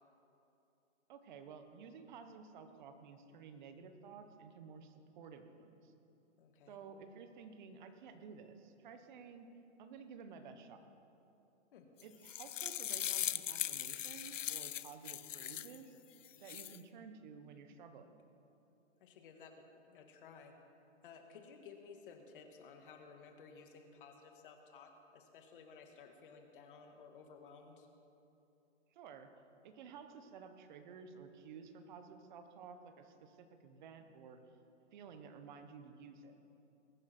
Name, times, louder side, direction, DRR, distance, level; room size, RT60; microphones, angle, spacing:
voice 1, 1.1-5.9 6.7-9.5 9.8-10.8 12.0-16.0 16.4-18.1 28.9-29.3 29.6-34.4 34.9-36.4, right 6 dB, 40° right, 8 dB, 1.2 m, -53 dB
voice 2, 6.4-6.8 11.7-11.9 19.0-19.5 19.8-20.5 21.0-27.9, left 5 dB, 45° left, 4 dB, 1.9 m, -56 dB
sound 1, 12.0-15.8 16.2-16.8, left 10 dB, 90° left, 0.6 m, -40 dB
21.5 x 9.6 x 4.5 m, 2.8 s
hypercardioid pair, 150°, 37 cm